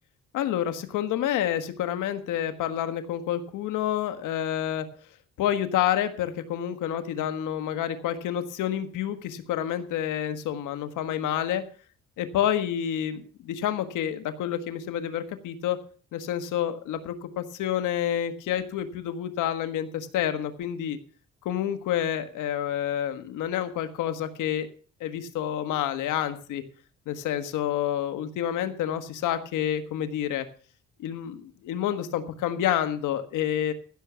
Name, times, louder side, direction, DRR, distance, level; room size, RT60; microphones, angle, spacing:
voice 1, 0.3-4.9 5.4-11.6 12.2-15.8 16.1-21.0 21.4-24.7 25.0-26.6 27.1-30.5 31.0-33.7, left 10 dB, 90° left, 10 dB, 1.5 m, -28 dB
15.5 x 6.9 x 6.1 m, 0.42 s
cardioid pair, 90°, 30 cm